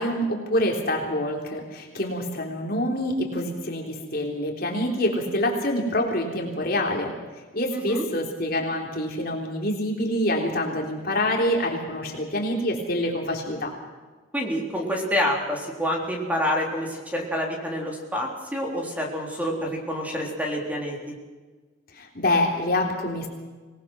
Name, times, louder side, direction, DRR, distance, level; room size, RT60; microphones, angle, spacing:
voice 1, 0.0-7.2 7.5-13.7 21.9-23.3, left 1 dB, 50° left, 1 dB, 3.6 m, -26 dB
voice 2, 7.7-8.1 14.3-21.1, equal, 10° right, -1 dB, 3.6 m, -27 dB
25.5 x 19.5 x 6.3 m, 1.3 s
head